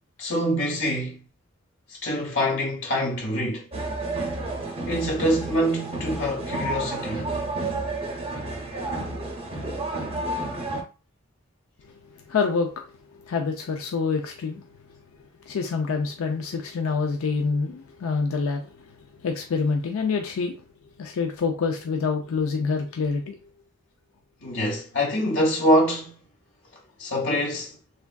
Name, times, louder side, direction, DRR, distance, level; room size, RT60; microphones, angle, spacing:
voice 1, 0.2-1.2 1.9-3.7 4.9-7.3 24.4-26.2 27.0-27.8, equal, 65° left, 1.1 m, -25 dB
sound 1, 3.7-10.8, right 2 dB, 30° right, 0.6 m, -30 dB
voice 2, 12.3-12.7 13.3-14.6 15.5-18.6 19.2-20.6 21.0-23.4, left 4 dB, 80° left, 0.4 m, -26 dB
3.4 x 2.3 x 2.3 m
head